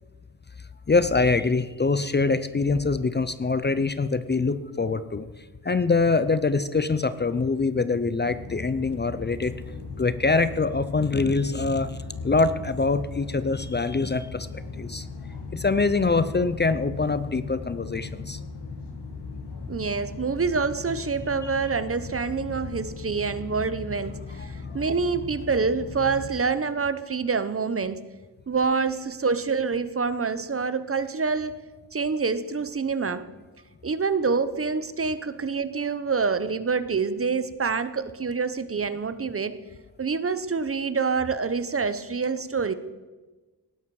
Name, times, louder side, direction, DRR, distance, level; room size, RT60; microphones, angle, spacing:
voice 1, 0.9-9.5 10.0-12.0 12.2-14.5 14.7-15.1 15.5-18.4 21.4-21.5 24.4-24.6, left 3 dB, 25° left, 13 dB, 0.6 m, -24 dB
sound 1, 8.2-26.3, left 4 dB, 90° left, 2.2 m, -38 dB
voice 2, 19.7-28.0 28.5-31.6 31.9-33.2 33.8-39.6 40.0-42.7, right 5 dB, 35° right, 13 dB, 0.8 m, -26 dB
18.5 x 11.5 x 4.8 m, 1.2 s
wide cardioid pair, 120°, 39 cm